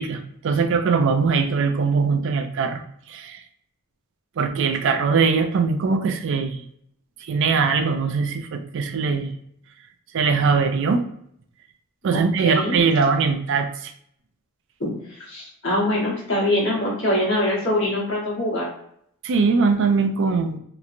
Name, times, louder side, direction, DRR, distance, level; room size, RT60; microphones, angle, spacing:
voice 1, 0.0-2.8 3.1-3.4 4.4-6.6 7.3-9.3 10.1-11.1 12.0-13.9 19.2-20.6, right 5 dB, 60° right, 7 dB, 0.3 m, -21 dB
voice 2, 12.1-12.7 14.8-18.7, left 1 dB, 55° left, -5 dB, 1.2 m, -24 dB
2.9 x 2.1 x 2.5 m, 0.69 s
head